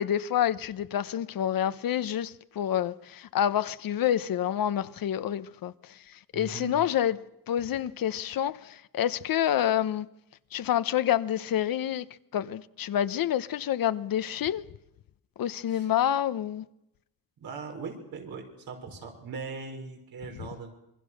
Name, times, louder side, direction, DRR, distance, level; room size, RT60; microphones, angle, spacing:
voice 1, 0.0-5.7 6.3-7.2 7.5-10.1 10.5-12.1 12.3-14.6 15.4-16.6, left 10 dB, 75° left, 0.9 m, -28 dB
voice 2, 6.3-6.8 15.7-15.9 17.4-20.7, right 4 dB, 90° right, 5.6 m, -40 dB
27.0 x 23.0 x 6.5 m
wide cardioid pair, 165°, 35 cm